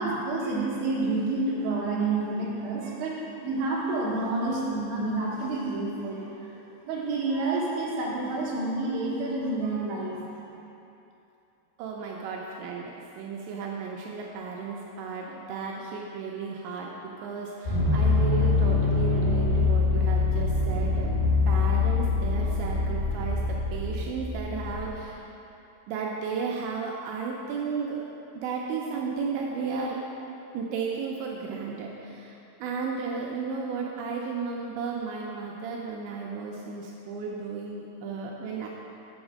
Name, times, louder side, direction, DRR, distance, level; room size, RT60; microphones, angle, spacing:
voice 1, 0.0-6.5 6.9-10.4, right 2 dB, 65° right, -7 dB, 1.9 m, -29 dB
voice 2, 11.8-25.2 25.9-28.2 28.4-30.0 30.5-38.7, right 5 dB, 85° right, -2 dB, 2.6 m, -34 dB
sound 1, 17.7-24.9, left 3 dB, 50° left, 2.6 m, -24 dB
7.1 x 5.7 x 6.2 m, 2.8 s
omnidirectional pair, 5.7 m